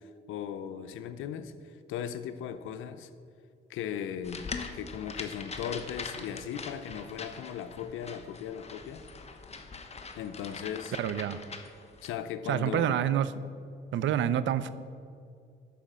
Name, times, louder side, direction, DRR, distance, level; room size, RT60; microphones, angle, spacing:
voice 1, 0.0-3.1 3.7-9.1 10.2-11.0 12.0-13.0, left 8 dB, 90° left, 11 dB, 0.7 m, -38 dB
sound 1, 4.2-12.1, left 4 dB, 30° left, 1.0 m, -42 dB
voice 2, 11.0-11.4 12.5-13.3 13.9-14.7, right 10 dB, 70° right, 15 dB, 0.5 m, -27 dB
12.0 x 5.0 x 7.4 m, 2.3 s
cardioid pair, 90°, 20 cm